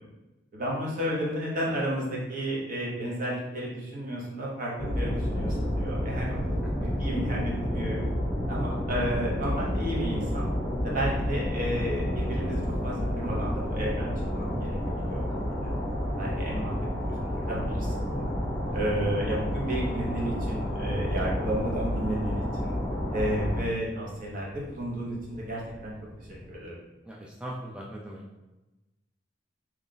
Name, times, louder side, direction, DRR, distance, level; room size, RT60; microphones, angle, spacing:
voice 1, 0.5-6.4 6.8-8.0 8.5-10.5 10.8-15.7 16.2-16.7 17.0-18.2 18.7-22.7 23.1-25.9 26.5-26.7, equal, 50° right, -4 dB, 1.0 m, -32 dB
sound 1, 4.8-23.6, equal, 25° left, 0.7 m, -30 dB
sound 2, 10.8-26.6, right 1 dB, 85° right, 1.5 m, -49 dB
voice 2, 18.6-19.4 27.0-28.4, right 1 dB, 5° right, -4 dB, 0.3 m, -41 dB
3.1 x 2.4 x 3.8 m, 1.0 s
head